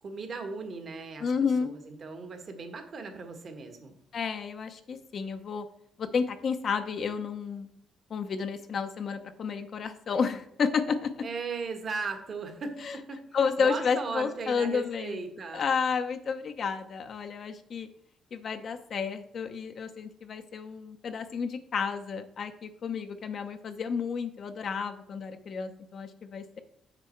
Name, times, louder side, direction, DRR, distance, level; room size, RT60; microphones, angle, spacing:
voice 1, 0.0-1.3 1.6-4.0 11.2-13.2 13.6-15.7, right 4 dB, 50° right, 5 dB, 1.4 m, -37 dB
voice 2, 1.2-1.7 4.1-5.7 6.0-7.7 8.1-11.2 12.8-13.0 13.3-15.2 15.5-17.9 18.3-26.6, left 6 dB, 55° left, 8 dB, 0.7 m, -31 dB
6.8 x 6.1 x 4.5 m, 0.71 s
cardioid pair, 90°, 0 cm